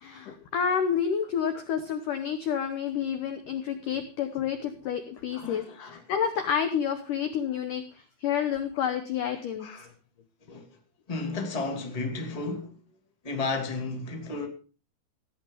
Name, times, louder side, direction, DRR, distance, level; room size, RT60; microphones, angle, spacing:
voice 1, 0.0-9.7, left 8 dB, 75° left, 1.9 m, -29 dB
voice 2, 5.3-6.0 9.3-9.9 10.5-10.6 11.1-12.8 13.2-14.5, left 3 dB, 15° left, 1.4 m, -33 dB
16.5 x 9.6 x 5.4 m
omnidirectional pair, 5.3 m